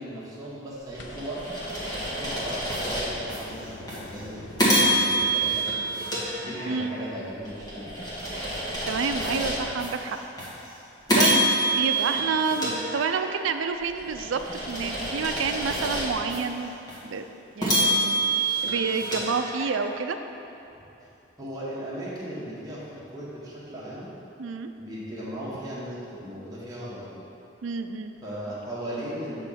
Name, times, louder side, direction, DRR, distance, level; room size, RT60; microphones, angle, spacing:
voice 1, 0.0-1.4 2.1-5.6 6.4-8.0 21.4-24.1 24.8-27.2 28.2-29.4, right 1 dB, 20° right, -8 dB, 1.5 m, -37 dB
sound 1, 0.9-3.4 3.9-4.0 4.6-7.0 7.4-9.9 10.4-10.5 11.1-13.5 13.9-16.4 16.9-17.0 17.6-19.9, right 1 dB, 20° left, 1.6 m, -27 dB
sound 2, 1.0-7.2 8.7-8.8, left 1 dB, 65° left, 0.7 m, -44 dB
voice 2, 6.7-7.0 8.9-10.2 11.2-16.7 17.0-17.2 17.6-20.2 24.4-24.7 27.6-28.1, right 5 dB, 85° right, 8 dB, 0.4 m, -29 dB
8.4 x 3.7 x 5.8 m, 2.9 s
head